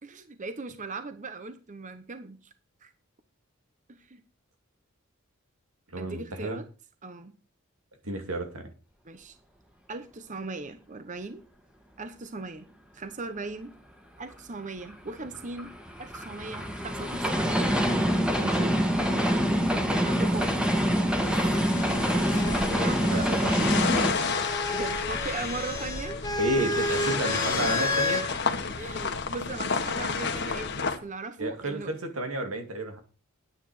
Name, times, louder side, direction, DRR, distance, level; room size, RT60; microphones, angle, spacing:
voice 1, 0.0-2.4 2.8-2.9 3.9-4.2 6.0-6.6 7.0-7.3 9.0-9.4 9.9-11.4 12.0-12.7 12.9-13.7 14.2-15.7 16.0-17.4 20.0-20.4 22.1-23.3 24.7-26.2 27.1-27.9 28.3-28.4 28.7-31.9, right 3 dB, 35° right, 10 dB, 0.9 m, -38 dB
voice 2, 5.9-6.6 8.0-8.7 18.4-18.8 23.1-23.8 26.4-28.2 31.4-33.0, right 1 dB, 90° right, 5 dB, 2.5 m, -31 dB
sound 1, 14.8-24.1, equal, 5° right, 1.6 m, -25 dB
sound 2, 21.2-31.0, left 5 dB, 55° left, 1.5 m, -31 dB
sound 3, 21.7-28.3 29.4-30.0, left 1 dB, 15° left, 1.9 m, -33 dB
9.8 x 9.7 x 4.8 m, 0.36 s
head